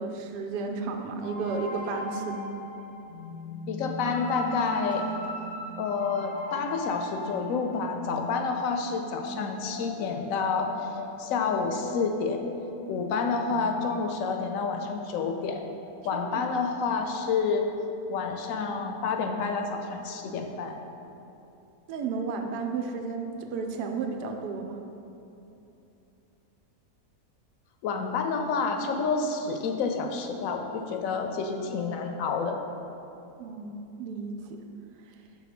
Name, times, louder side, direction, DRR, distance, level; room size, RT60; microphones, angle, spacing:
voice 1, 0.0-2.4 16.1-16.4 21.9-24.8 33.4-34.6, right 4 dB, 90° right, 4 dB, 1.2 m, -33 dB
sound 1, 1.2-14.0, left 1 dB, 15° left, 0.6 m, -39 dB
voice 2, 3.7-5.1 5.8-10.9 11.2-12.5 12.9-15.7 16.0-17.7 18.1-20.8 27.8-32.6, left 5 dB, 70° left, 4 dB, 0.8 m, -29 dB
6.0 x 3.7 x 5.9 m, 2.8 s
omnidirectional pair, 1.7 m